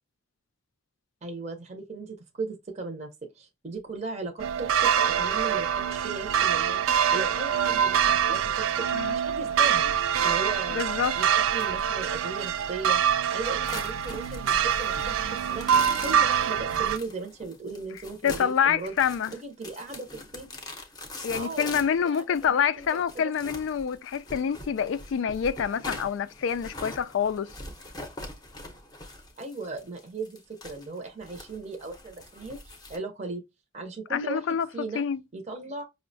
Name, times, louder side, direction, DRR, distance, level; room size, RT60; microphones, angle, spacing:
voice 1, 1.2-3.1 3.3-8.9 9.1-9.9 10.2-10.8 11.1-18.9 19.3-20.5 21.3-22.5 22.8-23.3 29.4-33.4 33.7-34.5 34.7-35.0 35.3-35.8, right 3 dB, 35° right, 0.6 m, -37 dB
sound 1, 4.4-17.0, right 8 dB, 85° right, 0.3 m, -25 dB
voice 2, 10.7-11.2 18.2-19.3 21.2-27.5 34.1-34.7 34.9-35.2, left 7 dB, 70° left, 0.3 m, -27 dB
sound 2, 13.7-33.0, left 2 dB, 20° left, 0.6 m, -43 dB
5.3 x 2.1 x 2.6 m
head